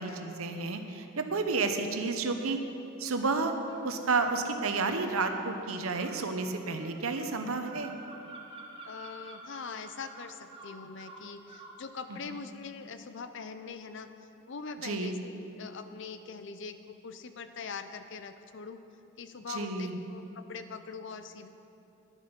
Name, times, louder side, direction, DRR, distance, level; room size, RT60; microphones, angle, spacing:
voice 1, 0.0-2.6 3.0-3.5 3.8-7.9 12.1-12.4 14.8-15.2 19.5-20.0, right 3 dB, 85° right, 6 dB, 0.9 m, -31 dB
sound 1, 3.7-4.4 5.3-11.8, right 2 dB, 25° right, 1.3 m, -49 dB
voice 2, 8.8-14.1 14.5-18.8 19.2-21.5, left 5 dB, 60° left, 10 dB, 0.6 m, -42 dB
11.0 x 10.0 x 5.3 m, 2.8 s
head